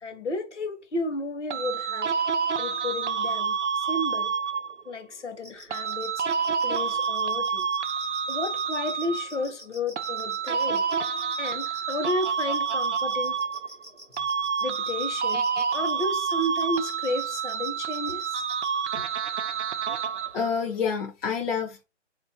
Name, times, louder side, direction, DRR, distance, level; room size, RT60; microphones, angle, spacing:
voice 1, 0.0-2.1 2.6-4.3 4.9-6.2 6.6-7.7 8.3-10.8 11.4-13.4 14.6-15.5 15.7-18.4 19.0-19.1, left 2 dB, 70° left, 1.1 m, -32 dB
sound 1, 1.5-4.9 5.7-9.5 10.0-13.9 14.2-20.5, right 6 dB, 70° right, 0.5 m, -28 dB
sound 2, 5.4-18.7, equal, 25° right, 0.5 m, -46 dB
voice 2, 20.3-21.8, left 6 dB, 55° left, 0.7 m, -28 dB
3.9 x 2.5 x 2.7 m
hypercardioid pair, 175°, 36 cm